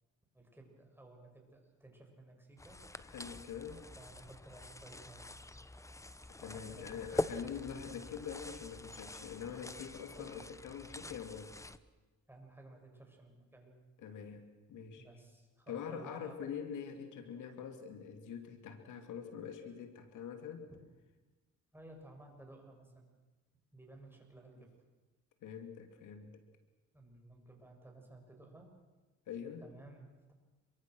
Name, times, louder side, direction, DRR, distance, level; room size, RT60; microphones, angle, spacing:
voice 1, 0.3-2.8 3.9-5.3 6.4-7.5 10.1-10.5 12.3-13.7 15.0-16.5 20.7-20.8 21.7-23.1 23.7-24.7 26.9-28.7 29.6-30.3, right 2 dB, 5° right, 2 dB, 7.0 m, -56 dB
sound 1, 2.6-11.8, left 2 dB, 10° left, 1.0 m, -44 dB
voice 2, 3.1-3.8 6.4-11.5 14.0-15.1 15.7-20.6 25.4-26.4 29.3-29.6, left 7 dB, 80° left, 7 dB, 2.7 m, -44 dB
28.0 x 23.5 x 6.4 m, 1.2 s
cardioid pair, 90°, 30 cm